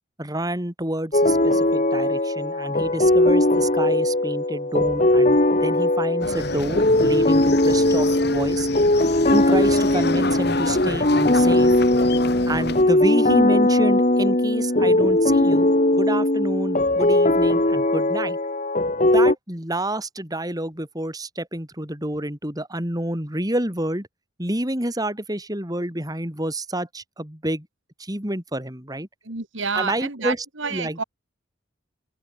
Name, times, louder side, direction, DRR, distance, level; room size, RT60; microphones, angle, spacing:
voice 1, 0.2-8.7 9.3-11.7 12.5-18.4 19.1-24.1 24.4-27.7 28.0-29.1 29.7-31.0, right 1 dB, 20° right, 4.0 m, -28 dB
sound 1, 1.1-19.3, left 1 dB, 35° left, 2.1 m, -19 dB
sound 2, 6.2-12.8, left 2 dB, 55° left, 4.0 m, -29 dB
voice 2, 29.3-31.0, right 5 dB, 70° right, 2.2 m, -29 dB
open air
head